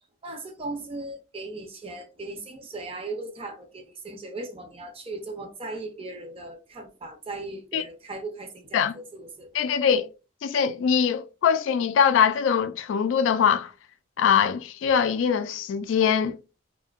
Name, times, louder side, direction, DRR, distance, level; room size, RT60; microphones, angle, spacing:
voice 1, 0.2-9.5, right 2 dB, 30° right, 0.5 m, -38 dB
voice 2, 9.5-10.1 10.4-13.7 14.2-16.3, left 7 dB, 85° left, 0.3 m, -22 dB
2.6 x 2.1 x 2.3 m
head